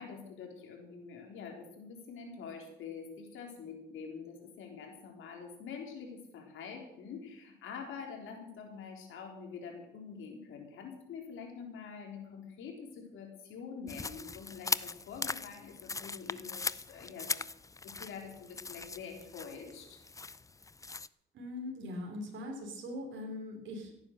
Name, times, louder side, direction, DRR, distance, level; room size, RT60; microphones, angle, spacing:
voice 1, 0.0-17.3 17.8-20.0, left 6 dB, 85° left, 2 dB, 3.9 m, -46 dB
sound 1, 13.9-21.1, left 4 dB, 15° left, 0.5 m, -40 dB
voice 2, 21.3-23.9, left 1 dB, 70° right, 1 dB, 3.5 m, -41 dB
16.0 x 9.6 x 6.6 m, 0.86 s
cardioid pair, 90°, 20 cm